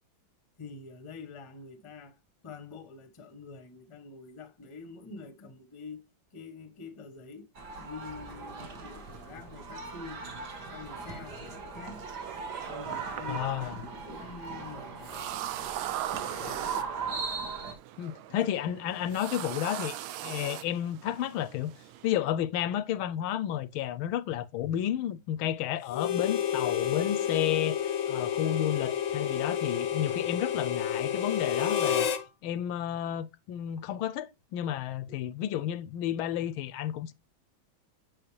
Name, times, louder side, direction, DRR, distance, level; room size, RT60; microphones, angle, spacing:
voice 1, 0.6-2.2 2.4-6.0 6.3-7.5 7.8-10.2 10.7-12.1 12.7-15.4 15.8-16.9 35.1-35.3, left 4 dB, 25° left, 0.7 m, -46 dB
sound 1, 7.6-17.7, right 4 dB, 50° right, 2.0 m, -39 dB
sound 2, 11.9-22.1, right 13 dB, 80° right, 1.4 m, -40 dB
voice 2, 13.3-13.8 16.4-16.6 18.0-21.7 22.0-32.1 32.4-37.1, left 11 dB, 80° left, 1.4 m, -32 dB
Harmonica, 25.9-32.2, left 9 dB, 60° left, 0.8 m, -30 dB
7.9 x 6.1 x 3.2 m
omnidirectional pair, 2.3 m